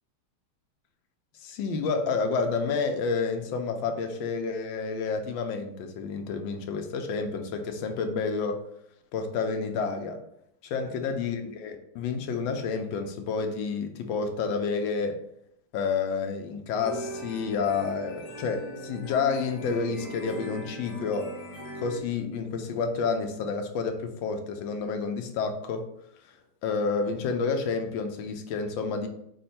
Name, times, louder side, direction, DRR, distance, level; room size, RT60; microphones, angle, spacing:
voice 1, 1.4-8.6 9.1-10.2 10.6-15.2 15.7-21.3 21.7-25.9 26.6-29.1, left 5 dB, 75° left, 5 dB, 1.2 m, -29 dB
sound 1, 16.8-22.0, equal, 40° left, 0.4 m, -39 dB
5.3 x 2.1 x 4.1 m, 0.73 s
omnidirectional pair, 2.3 m